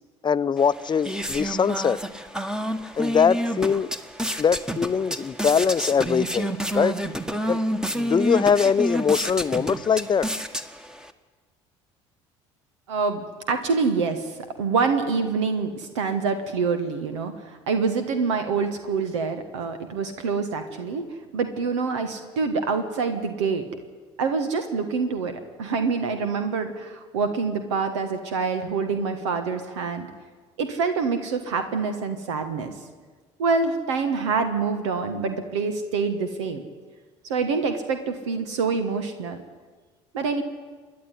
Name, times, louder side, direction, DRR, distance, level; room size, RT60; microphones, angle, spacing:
voice 1, 0.2-2.0 3.0-3.9 4.4-6.9 7.5-7.6 7.9-10.3, left 6 dB, 30° left, 16 dB, 0.7 m, -22 dB
sound 1, 0.6-11.1, equal, 5° right, 1.4 m, -29 dB
voice 2, 12.9-13.2 13.5-23.6 24.2-30.1 30.6-32.7 33.4-36.6 37.2-39.4 40.1-40.4, right 4 dB, 80° right, 8 dB, 1.5 m, -26 dB
27.0 x 10.5 x 10.0 m, 1.4 s
hypercardioid pair, 60°, 15 cm